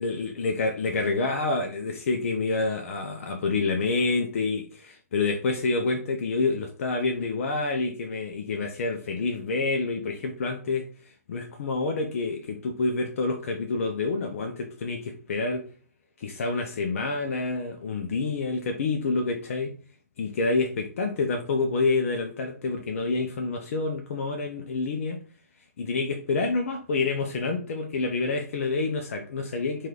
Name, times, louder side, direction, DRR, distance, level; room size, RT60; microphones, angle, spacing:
voice 1, 0.0-10.9 11.3-15.7 16.2-19.7 20.2-25.2 25.8-29.9, left 3 dB, 50° left, 0.4 m, -28 dB
3.1 x 2.4 x 3.5 m
figure-of-eight pair, 125°, 9 cm